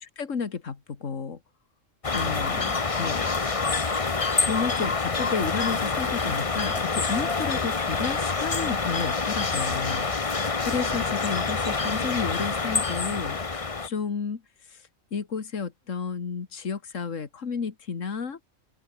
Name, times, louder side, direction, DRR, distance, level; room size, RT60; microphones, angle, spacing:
voice 1, 0.0-1.4 2.1-2.7 3.0-3.4 4.4-14.4 14.7-14.8 15.1-18.4, left 5 dB, 75° left, 2.2 m, -32 dB
sound 1, 2.0-13.9, left 4 dB, 30° left, 1.1 m, -27 dB
open air
omnidirectional pair, 1.3 m